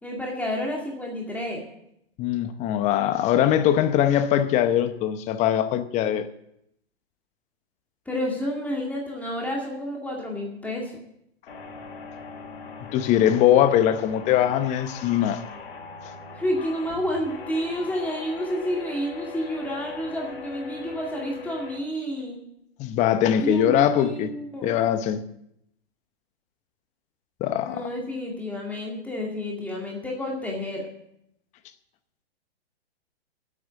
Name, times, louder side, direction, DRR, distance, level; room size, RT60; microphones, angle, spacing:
voice 1, 0.0-1.6 8.1-10.9 16.3-22.4 23.4-24.8 27.6-30.8, equal, 5° left, 2.1 m, -30 dB
voice 2, 2.2-6.3 12.9-15.4 16.0-16.1 22.8-24.3 24.6-25.2 27.4-27.8, left 10 dB, 20° left, 0.8 m, -21 dB
sound 1, 11.5-21.8, left 4 dB, 60° left, 4.0 m, -40 dB
8.9 x 8.7 x 9.3 m
hypercardioid pair, 135°, 31 cm